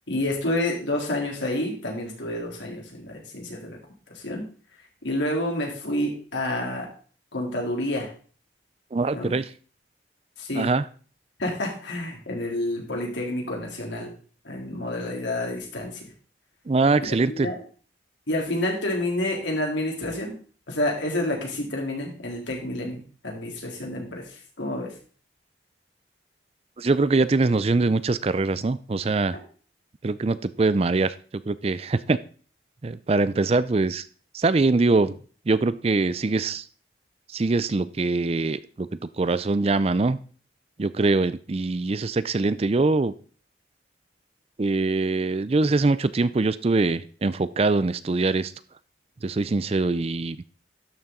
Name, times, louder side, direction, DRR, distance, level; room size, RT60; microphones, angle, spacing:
voice 1, 0.1-3.8 4.1-4.4 5.0-6.9 7.3-8.1 9.1-9.3 10.4-10.7 11.4-14.1 14.4-16.0 17.3-17.6 18.3-20.3 20.7-24.9, left 1 dB, 85° left, 0 dB, 3.2 m, -29 dB
voice 2, 8.9-9.5 10.5-10.8 16.7-17.5 26.8-29.4 30.0-31.1 31.5-32.2 32.8-34.1 34.3-35.1 35.5-36.6 37.3-38.9 39.2-40.2 40.8-43.1 44.6-48.5 49.2-50.4, right 3 dB, 35° right, 15 dB, 0.4 m, -23 dB
12.0 x 6.8 x 3.8 m, 0.42 s
head